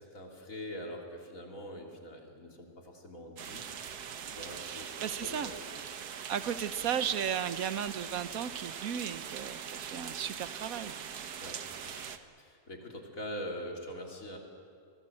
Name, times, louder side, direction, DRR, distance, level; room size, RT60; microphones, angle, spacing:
voice 1, 0.0-3.7 4.3-5.5 11.4-12.0 12.4-14.4, equal, 55° left, 0 dB, 3.6 m, -43 dB
sound 1, 3.4-12.2, right 7 dB, 80° right, 1.6 m, -42 dB
voice 2, 4.6-5.5 6.3-11.0, right 8 dB, 65° right, 12 dB, 1.3 m, -35 dB
28.5 x 20.0 x 7.9 m, 2.3 s
omnidirectional pair, 1.7 m